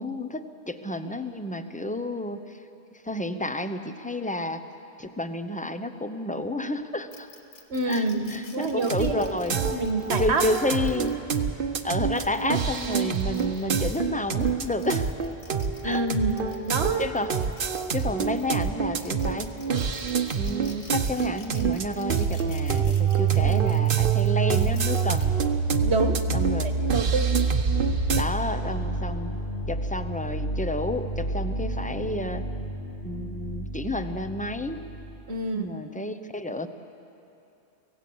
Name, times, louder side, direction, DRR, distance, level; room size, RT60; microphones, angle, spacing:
voice 1, 0.0-2.6 3.0-4.6 5.0-7.3 7.8-8.0 8.3-9.6 10.2-11.2 11.8-15.1 15.8-16.0 17.0-17.4 17.9-19.5 20.4-25.4 26.3-26.9 28.2-29.3 29.7-32.5 33.0-34.8 35.5-36.7, left 1 dB, 10° left, 9 dB, 0.7 m, -30 dB
sound 1, 7.1-11.4 12.0-14.0 14.4-18.7 19.0-25.2, left 3 dB, 90° left, 2.1 m, -49 dB
voice 2, 7.7-10.4 15.8-17.1 23.3-23.7 25.8-26.2 26.9-27.4 35.3-35.7, right 3 dB, 80° right, 6 dB, 1.6 m, -27 dB
sound 2, 8.8-28.2, right 6 dB, 55° right, 1.1 m, -25 dB
sound 3, 27.5-35.2, right 1 dB, 65° left, 1.8 m, -32 dB
25.0 x 17.0 x 7.9 m, 2.8 s
omnidirectional pair, 1.1 m